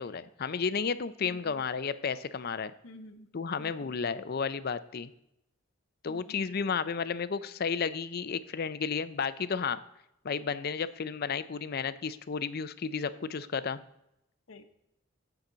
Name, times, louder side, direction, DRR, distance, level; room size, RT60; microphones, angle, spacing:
voice 1, 0.0-2.7 3.3-5.1 6.0-9.8 10.2-13.8, left 5 dB, 45° left, 14 dB, 0.5 m, -32 dB
voice 2, 1.2-1.6 2.8-3.3 3.6-4.0 6.1-6.6 14.5-14.6, left 1 dB, 75° left, 8 dB, 1.0 m, -50 dB
15.5 x 5.9 x 3.9 m, 0.83 s
head